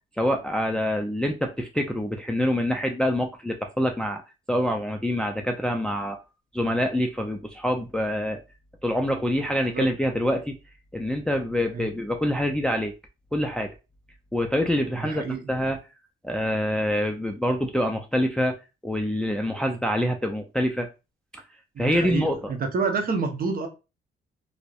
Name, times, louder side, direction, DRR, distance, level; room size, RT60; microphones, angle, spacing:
voice 1, 0.2-4.2 4.5-6.2 6.5-8.4 8.8-10.6 10.9-12.9 13.3-13.7 14.3-15.8 16.2-18.6 18.8-20.9 21.3-21.4 21.8-22.5, equal, 5° left, 0.3 m, -26 dB
voice 2, 15.0-15.4 21.8-23.7, right 4 dB, 45° right, 0.7 m, -28 dB
2.5 x 2.0 x 2.3 m
cardioid pair, 90°, 20 cm